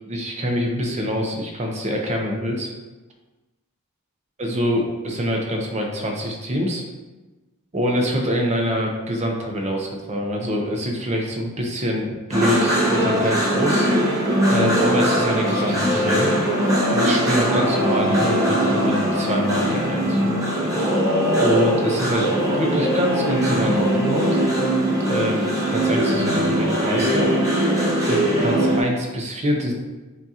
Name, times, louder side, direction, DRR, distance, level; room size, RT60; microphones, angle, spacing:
voice 1, 0.1-2.7 4.4-6.8 7.7-13.9 14.4-16.3 16.9-20.3 21.4-22.3 22.5-24.4 25.1-27.3 28.1-29.7, equal, 30° right, 1 dB, 0.6 m, -25 dB
sound 1, 12.3-28.8, equal, 15° right, 1.1 m, -20 dB
6.6 x 2.4 x 2.8 m, 1.2 s
head